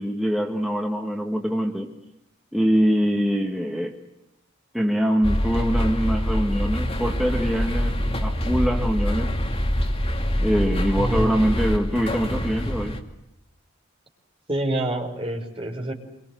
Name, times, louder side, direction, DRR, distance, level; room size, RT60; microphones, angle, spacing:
voice 1, 0.0-1.9 2.5-4.0 4.7-9.4 10.4-13.0, equal, ahead, 0 dB, 1.8 m, -24 dB
sound 1, 5.2-13.0, equal, 30° left, 2.7 m, -25 dB
voice 2, 11.0-11.4 14.5-15.9, right 1 dB, 25° right, 0 dB, 5.7 m, -27 dB
28.0 x 24.5 x 7.9 m, 0.86 s
head